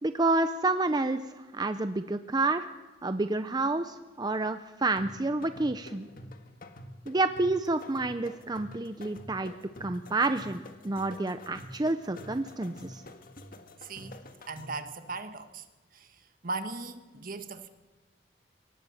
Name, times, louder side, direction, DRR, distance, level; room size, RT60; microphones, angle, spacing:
voice 1, 0.0-2.7 3.0-6.1 7.1-9.5 9.8-13.0, right 2 dB, 20° right, 0.6 m, -29 dB
sound 1, 5.0-14.9, left 1 dB, 50° left, 1.6 m, -48 dB
voice 2, 13.8-14.2 14.5-15.6 15.9-17.7, right 3 dB, 50° right, 1.4 m, -38 dB
23.0 x 18.5 x 6.5 m
head